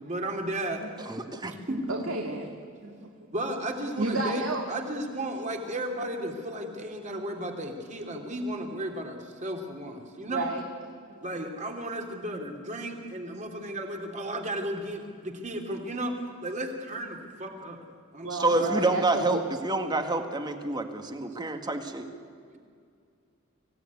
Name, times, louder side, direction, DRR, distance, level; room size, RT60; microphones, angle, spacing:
voice 1, 0.0-0.8 1.4-1.8 3.3-10.5 11.2-16.1 16.4-17.8 18.1-18.8, right 1 dB, 35° right, 2 dB, 3.1 m, -34 dB
voice 2, 1.0-1.5 18.4-22.1, right 2 dB, 20° right, 6 dB, 1.8 m, -28 dB
voice 3, 1.7-2.5 2.8-3.1 4.0-4.6 10.3-10.6 11.1-11.2 18.2-19.4, right 2 dB, 75° right, 1 dB, 2.2 m, -31 dB
25.0 x 16.5 x 9.6 m, 2.2 s
head